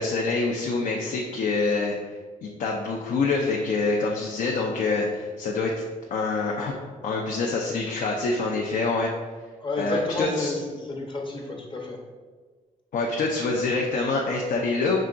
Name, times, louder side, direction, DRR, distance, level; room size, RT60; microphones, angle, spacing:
voice 1, 0.0-2.0 2.4-5.7 6.1-6.7 7.0-9.1 9.8-10.5 12.9-15.0, left 3 dB, 70° left, -1 dB, 0.6 m, -26 dB
voice 2, 9.6-12.0, left 2 dB, 35° left, 0 dB, 0.8 m, -31 dB
5.7 x 3.7 x 2.5 m, 1.4 s
cardioid pair, 110°, 14 cm